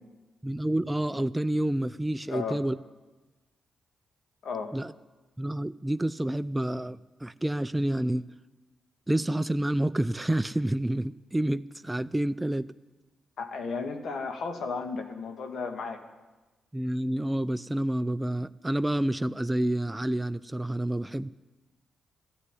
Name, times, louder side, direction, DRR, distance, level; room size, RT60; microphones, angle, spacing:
voice 1, 0.4-2.8 4.7-4.9 5.4-8.2 9.1-12.7 16.7-21.3, right 1 dB, 15° right, 13 dB, 0.4 m, -29 dB
voice 2, 2.3-2.6 4.4-4.7 13.4-16.0, left 4 dB, 70° left, 6 dB, 1.9 m, -34 dB
14.5 x 9.8 x 9.9 m, 1.2 s
cardioid pair, 65°, 0 cm